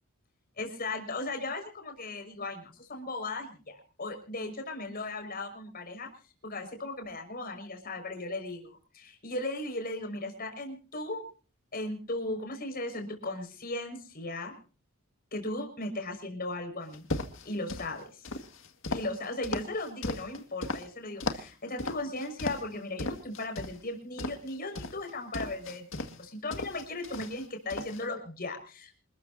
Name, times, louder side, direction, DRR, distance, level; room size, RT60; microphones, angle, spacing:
voice 1, 0.6-6.1 6.4-11.2 11.7-14.5 15.3-17.1 17.4-18.0 18.9-29.0, left 2 dB, 45° left, 5 dB, 5.7 m, -37 dB
sound 1, 16.9-17.9 18.2-20.8 21.2-21.5 21.8-22.7 23.0-23.8 24.2-26.2 26.5-27.4 27.7-28.0, left 2 dB, 65° left, 2.0 m, -35 dB
27.5 x 14.0 x 2.8 m, 0.37 s
head